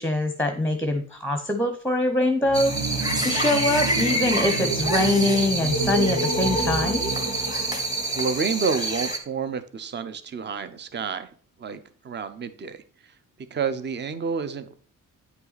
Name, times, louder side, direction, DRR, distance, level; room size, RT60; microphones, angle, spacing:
voice 1, 0.0-2.7 3.2-7.1, left 2 dB, 5° left, 6 dB, 0.8 m, -24 dB
sound 1, 2.4-8.4, right 3 dB, 85° right, 1.9 m, -29 dB
sound 2, 2.5-9.2, right 2 dB, 10° right, 1.4 m, -27 dB
voice 2, 8.1-11.3 11.6-11.8 12.0-12.8 13.5-14.7, right 5 dB, 35° right, 12 dB, 0.7 m, -29 dB
9.3 x 5.5 x 4.0 m, 0.43 s
wide cardioid pair, 130°, 32 cm